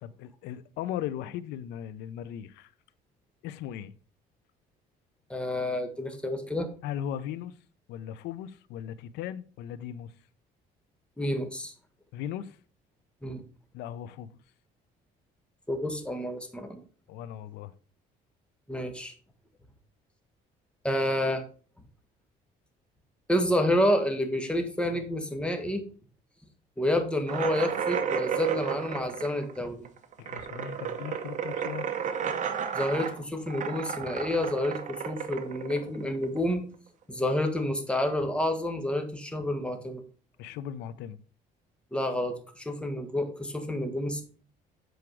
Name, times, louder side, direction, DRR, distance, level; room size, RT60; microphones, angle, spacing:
voice 1, 0.0-2.7 3.4-3.9 6.8-7.6 7.9-10.1 12.1-12.6 13.7-14.3 17.1-17.7 30.2-31.9 40.4-41.2, left 10 dB, 90° left, 0.6 m, -37 dB
voice 2, 5.3-6.7 11.2-11.7 13.2-13.4 15.7-16.8 18.7-19.1 20.8-21.4 23.3-25.8 26.8-29.9 32.7-36.6 37.1-40.0 41.9-44.2, left 1 dB, 5° left, 1.5 m, -29 dB
sound 1, 27.3-36.7, right 7 dB, 45° right, 0.9 m, -33 dB
7.9 x 4.8 x 4.6 m
cardioid pair, 110°, 17 cm